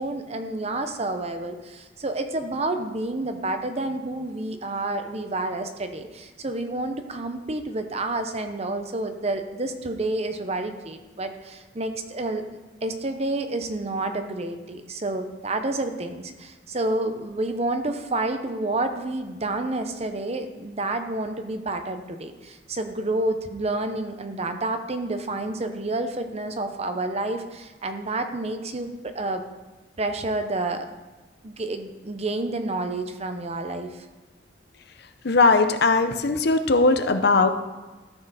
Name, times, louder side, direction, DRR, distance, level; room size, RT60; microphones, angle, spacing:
voice 1, 0.0-12.4 12.8-29.5 30.0-30.9 31.4-34.0, right 2 dB, 35° right, 7 dB, 0.8 m, -29 dB
voice 2, 35.2-37.5, left 3 dB, 60° left, 8 dB, 0.7 m, -19 dB
13.5 x 6.6 x 4.1 m, 1.2 s
head